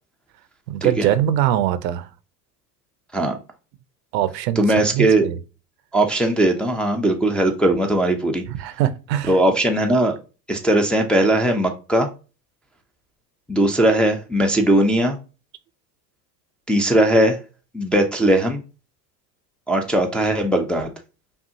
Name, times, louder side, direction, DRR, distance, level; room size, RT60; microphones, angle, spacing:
voice 1, 0.7-2.1 4.1-5.4 8.5-9.4, right 12 dB, 80° right, 0.7 m, -22 dB
voice 2, 4.6-5.3 5.9-8.4 9.3-10.2 10.5-12.1 13.5-15.2 16.7-17.4 17.7-18.6 19.7-20.9, right 1 dB, ahead, 0.5 m, -19 dB
5.5 x 2.4 x 2.7 m
hypercardioid pair, 95°, 50 cm